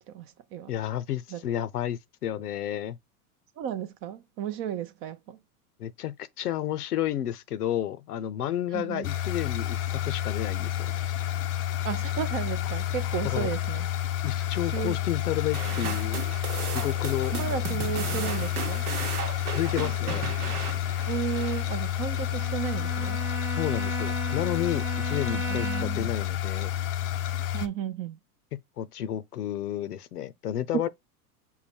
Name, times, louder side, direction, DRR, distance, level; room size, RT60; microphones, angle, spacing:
voice 1, 0.7-3.0 5.8-10.9 13.2-13.5 14.2-16.2 16.7-17.3 19.5-20.3 23.6-26.7 28.8-30.9, left 11 dB, 85° left, 0.7 m, -31 dB
voice 2, 3.6-5.4 8.7-9.1 11.8-13.9 14.7-15.0 17.3-18.9 21.1-23.2 25.5-26.1 27.5-28.2 30.7-30.9, right 10 dB, 30° right, 0.4 m, -33 dB
sound 1, 9.0-27.7, left 12 dB, 30° left, 0.4 m, -30 dB
sound 2, 15.5-22.1, right 6 dB, 85° right, 1.0 m, -36 dB
Bowed string instrument, 22.1-26.2, right 3 dB, 5° right, 0.9 m, -36 dB
5.6 x 2.2 x 4.2 m
hypercardioid pair, 100°, 45 cm